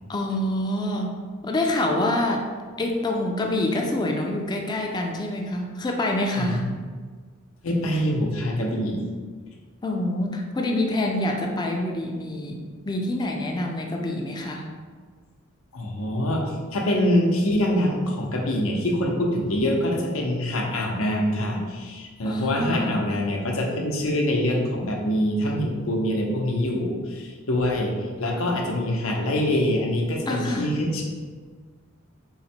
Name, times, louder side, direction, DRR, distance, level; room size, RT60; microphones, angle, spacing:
voice 1, 0.1-1.2 1.4-2.5 2.8-6.6 9.8-14.7 22.2-23.0 30.3-30.7, left 1 dB, 20° left, 1 dB, 0.4 m, -26 dB
voice 2, 7.6-9.0 15.7-31.0, left 1 dB, 85° left, 0 dB, 0.6 m, -25 dB
3.9 x 2.1 x 4.3 m, 1.5 s
head